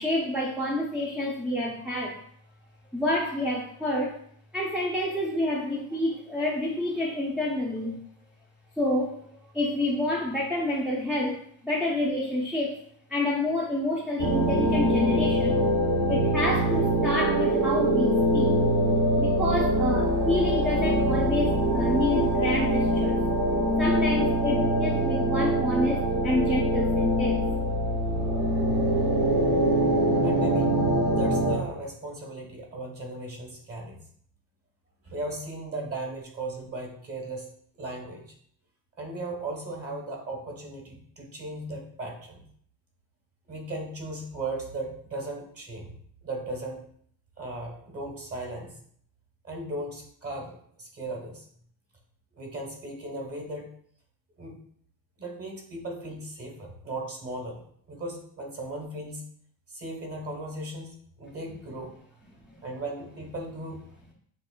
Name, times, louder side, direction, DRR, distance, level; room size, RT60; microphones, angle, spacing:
voice 1, 0.0-2.2 2.9-4.2 4.5-8.0 8.8-12.8 13.1-15.6 16.1-18.6 19.2-23.2 23.8-27.4 62.5-62.6, left 1 dB, ahead, -3 dB, 0.4 m, -28 dB
sound 1, 14.2-31.6, right 1 dB, 50° right, 0.9 m, -24 dB
voice 2, 30.2-30.7 31.0-34.0 35.0-37.5 37.8-38.2 39.0-42.5 43.5-45.9 46.2-46.8 47.4-48.7 49.4-51.4 52.3-53.7 54.4-54.5 55.2-57.6 57.9-59.2 59.7-61.9 62.6-63.8, right 2 dB, 35° right, 1 dB, 1.2 m, -37 dB
7.1 x 3.1 x 2.2 m, 0.63 s
cardioid pair, 130°, 43 cm